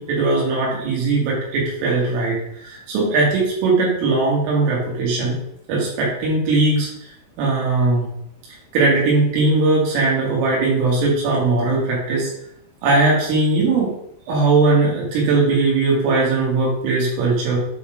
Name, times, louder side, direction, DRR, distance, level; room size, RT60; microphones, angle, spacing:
voice 1, 0.0-5.4 5.7-6.9 7.4-8.1 8.7-12.3 12.8-13.9 14.3-17.6, right 3 dB, 85° right, -4 dB, 4.4 m, -19 dB
8.3 x 4.0 x 4.9 m, 0.75 s
omnidirectional pair, 5.6 m